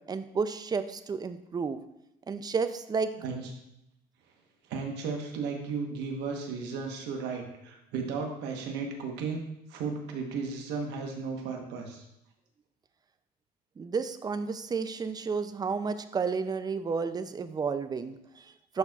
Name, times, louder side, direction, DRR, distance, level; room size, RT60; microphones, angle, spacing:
voice 1, 0.1-1.8 2.3-3.1 13.8-18.8, right 5 dB, 25° right, 11 dB, 0.4 m, -31 dB
voice 2, 4.7-9.4 9.7-12.0, right 5 dB, 90° right, 3 dB, 1.1 m, -34 dB
11.0 x 4.4 x 2.3 m, 0.83 s
cardioid pair, 110°, 17 cm